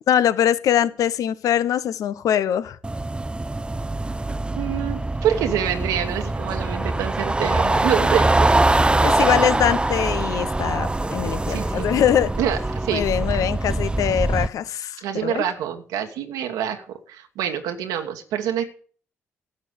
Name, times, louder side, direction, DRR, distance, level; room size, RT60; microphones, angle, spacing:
voice 1, 0.1-2.8 9.0-12.3 12.9-15.4, left 10 dB, 70° left, 0.8 m, -22 dB
sound 1, 2.8-14.5, right 2 dB, 15° right, 0.6 m, -23 dB
voice 2, 4.5-8.5 11.5-11.9 12.4-13.0 15.0-18.6, right 9 dB, 80° right, 1.3 m, -26 dB
11.5 x 6.7 x 8.2 m
hypercardioid pair, 50°, 6 cm